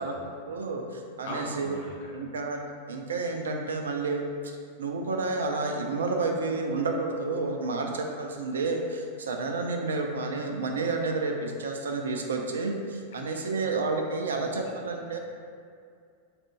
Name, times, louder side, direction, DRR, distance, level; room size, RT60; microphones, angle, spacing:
voice 1, 0.0-1.8 2.1-2.6 2.9-4.2 4.8-15.2, right 3 dB, 65° right, 3 dB, 0.4 m, -30 dB
voice 2, 1.2-2.1 13.1-13.7 14.4-14.7, left 2 dB, 55° left, -2 dB, 0.6 m, -41 dB
4.2 x 2.5 x 3.3 m, 2.2 s
figure-of-eight pair, 90°, 0 cm